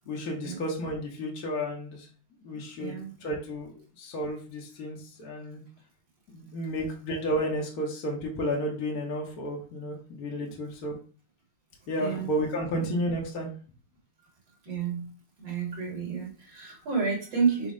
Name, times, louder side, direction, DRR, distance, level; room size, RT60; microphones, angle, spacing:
voice 1, 0.1-2.1 2.4-5.6 6.3-11.0 11.9-13.5, equal, 55° left, -1 dB, 1.2 m, -32 dB
voice 2, 2.8-3.1 12.0-12.3 12.7-12.8 14.6-15.1 15.4-17.7, right 5 dB, 60° right, -2 dB, 2.5 m, -30 dB
5.2 x 2.1 x 4.8 m, 0.39 s
omnidirectional pair, 2.4 m